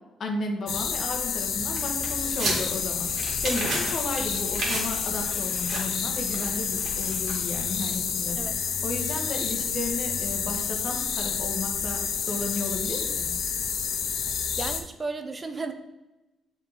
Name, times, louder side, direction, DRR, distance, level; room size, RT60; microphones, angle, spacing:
voice 1, 0.2-12.0 12.3-13.3, left 2 dB, 55° left, 2 dB, 1.2 m, -33 dB
sound 1, 0.7-14.8, left 6 dB, 70° left, 0.6 m, -29 dB
sound 2, 1.7-7.9, right 2 dB, 55° right, 1.9 m, -35 dB
voice 2, 3.5-3.8 8.3-8.6 14.6-15.7, right 3 dB, 25° right, 7 dB, 0.5 m, -34 dB
6.8 x 3.7 x 4.0 m, 1.0 s
cardioid pair, 90°, 0 cm